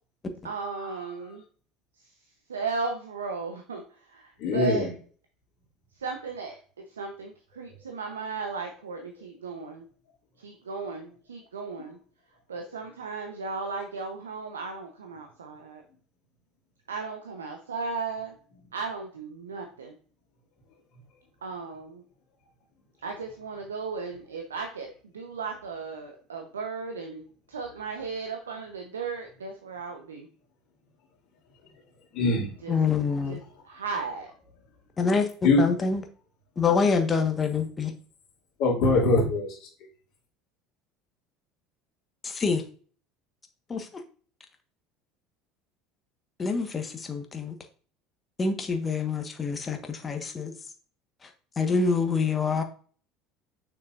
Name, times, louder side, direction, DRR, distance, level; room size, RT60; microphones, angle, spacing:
voice 1, 0.4-1.4 2.5-3.8 4.1-4.9 6.0-9.8 10.4-12.0 12.5-15.8 16.9-18.3 18.7-19.9 21.4-22.0 23.0-24.9 25.1-30.3 32.6-32.7 33.3-33.4 33.6-34.3, right 4 dB, 85° right, 4 dB, 0.8 m, -35 dB
voice 2, 4.4-4.9 32.1-32.5 35.4-35.6 38.6-39.6, left 2 dB, 60° left, -5 dB, 2.6 m, -22 dB
voice 3, 32.7-33.4 35.0-35.3 35.6-36.0 36.6-37.9 42.2-42.6 43.7-44.0 46.4-47.5 48.4-50.5 51.2-51.3 51.6-52.6, left 5 dB, 25° left, 5 dB, 1.3 m, -26 dB
6.8 x 6.3 x 2.5 m, 0.42 s
hypercardioid pair, 70°, 0 cm